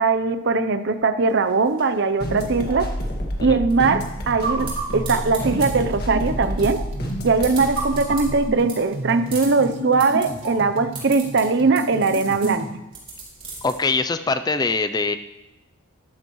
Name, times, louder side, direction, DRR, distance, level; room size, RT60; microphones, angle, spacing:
voice 1, 0.0-2.9 3.4-6.8 7.2-12.7, right 4 dB, 55° right, 11 dB, 0.6 m, -20 dB
sound 1, 1.2-13.7, right 3 dB, 25° right, 3.8 m, -39 dB
sound 2, 2.2-8.5, equal, 45° left, 1.8 m, -29 dB
sound 3, 4.3-12.8, right 2 dB, 70° right, 1.7 m, -32 dB
voice 2, 13.6-15.2, left 4 dB, 20° left, 10 dB, 0.3 m, -23 dB
13.0 x 12.5 x 3.1 m, 0.99 s
head